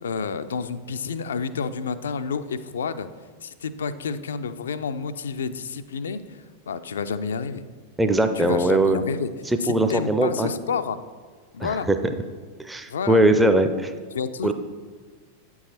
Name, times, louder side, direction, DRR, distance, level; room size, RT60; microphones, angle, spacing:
voice 1, 0.0-3.1 3.4-7.6 8.4-9.3 9.6-11.0 11.5-11.9 12.9-13.2 14.1-14.5, left 5 dB, 65° left, 12 dB, 0.4 m, -29 dB
voice 2, 8.0-9.0 9.7-10.5 11.6-12.1 12.6-13.9 14.4-14.5, right 1 dB, 5° right, 7 dB, 0.4 m, -20 dB
8.6 x 4.7 x 4.2 m, 1.5 s
figure-of-eight pair, 90°, 0 cm